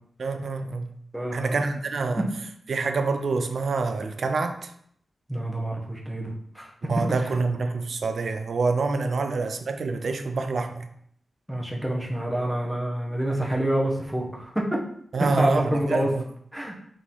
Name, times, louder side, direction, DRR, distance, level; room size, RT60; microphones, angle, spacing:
voice 1, 0.2-0.9 1.3-2.2 2.7-4.7 6.8-10.9 15.1-16.2, right 3 dB, 60° right, 7 dB, 0.4 m, -26 dB
voice 2, 1.1-1.6 2.2-2.3 5.3-6.7 7.2-7.3 11.5-14.7 15.2-16.1 16.5-16.7, right 1 dB, ahead, -2 dB, 0.8 m, -28 dB
3.6 x 3.0 x 4.0 m, 0.66 s
wide cardioid pair, 140°, 0 cm